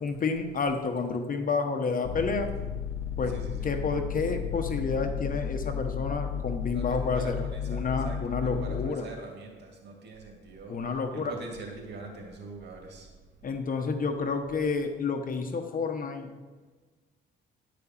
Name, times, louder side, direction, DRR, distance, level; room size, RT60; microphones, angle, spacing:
voice 1, 0.0-2.5 3.2-3.4 3.6-9.1 10.7-11.3 13.4-16.3, left 4 dB, 45° left, 5 dB, 1.0 m, -30 dB
sound 1, 2.0-8.9, left 8 dB, 80° left, 0.4 m, -33 dB
voice 2, 3.3-3.7 6.7-10.8 11.1-13.1, right 3 dB, 60° right, 1 dB, 2.2 m, -43 dB
10.5 x 5.0 x 7.2 m, 1.4 s
cardioid pair, 90°, 20 cm